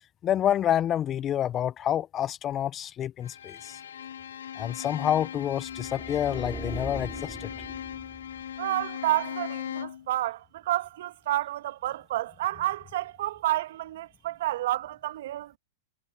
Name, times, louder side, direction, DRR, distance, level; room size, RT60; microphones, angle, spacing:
voice 1, 0.2-3.8 4.6-7.5, left 10 dB, 30° left, 1.1 m, -28 dB
Bowed string instrument, 3.2-10.1, left 9 dB, 75° left, 5.7 m, -38 dB
sound 1, 5.6-8.6, right 2 dB, 10° right, 6.1 m, -40 dB
voice 2, 8.6-15.6, right 15 dB, 65° right, 1.9 m, -30 dB
hypercardioid pair, 105°, 0 cm